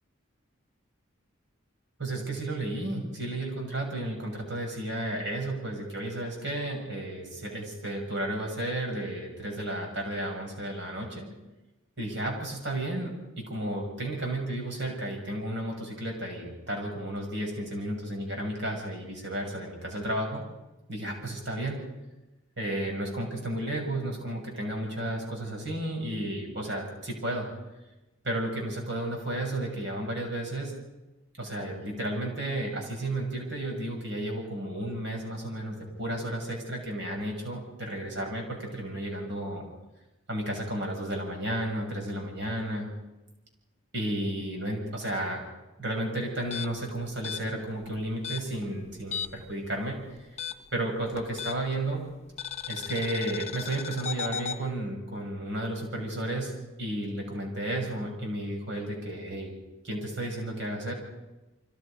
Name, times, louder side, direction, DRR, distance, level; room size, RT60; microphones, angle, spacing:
voice 1, 2.0-11.3 12.0-20.4 20.9-21.8 22.6-27.5 28.2-30.7 31.4-39.7 40.3-42.9 43.9-45.4 45.8-50.0 50.7-52.0 52.7-59.5 59.8-60.9, right 1 dB, 55° right, 1 dB, 7.1 m, -33 dB
sound 1, 46.4-49.5 49.8-51.8 52.4-54.6, left 8 dB, 30° left, 1.1 m, -36 dB
29.0 x 24.5 x 5.2 m, 1.0 s
head